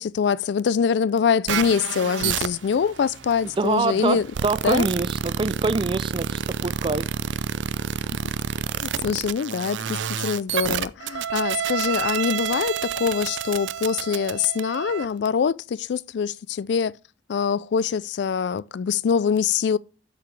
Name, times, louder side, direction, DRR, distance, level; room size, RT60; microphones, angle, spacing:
voice 1, 0.0-4.3 4.6-4.9 8.8-16.9 17.3-19.8, left 6 dB, 65° left, 0.3 m, -24 dB
sound 1, 1.5-15.1, right 8 dB, 85° right, 0.5 m, -29 dB
voice 2, 3.6-7.1, right 3 dB, 30° right, 0.4 m, -25 dB
8.1 x 6.9 x 3.2 m
head